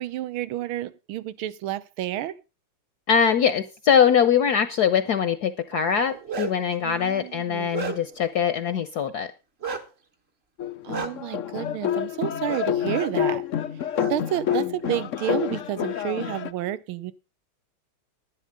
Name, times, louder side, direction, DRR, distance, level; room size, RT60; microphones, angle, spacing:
voice 1, 0.0-2.4 6.8-7.7 10.8-13.5 14.1-17.1, right 13 dB, 85° right, 1.6 m, -30 dB
voice 2, 3.1-9.3, left 7 dB, 60° left, 1.1 m, -22 dB
Bark, 6.0-6.7 7.2-8.3 9.6-9.8 10.9-11.1 12.5-12.7 12.9-13.1 13.9-14.1 14.5-15.3, right 5 dB, 35° right, 1.3 m, -33 dB
sound 1, 10.6-16.5, left 10 dB, 75° left, 0.6 m, -28 dB
11.0 x 10.5 x 5.2 m
omnidirectional pair, 2.3 m